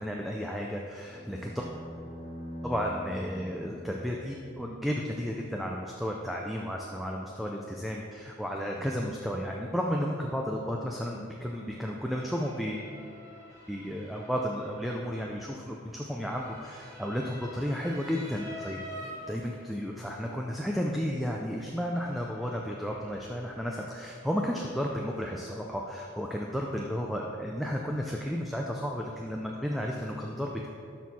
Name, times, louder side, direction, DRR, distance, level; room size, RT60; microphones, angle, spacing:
voice 1, 0.0-1.7 2.6-12.9 13.7-18.8 19.3-30.7, equal, ahead, -1 dB, 0.4 m, -33 dB
sound 1, 1.0-5.3, equal, 30° left, 1.3 m, -44 dB
Motor vehicle (road) / Siren, 10.9-28.3, equal, 15° right, 1.4 m, -50 dB
12.0 x 4.4 x 4.2 m, 2.4 s
head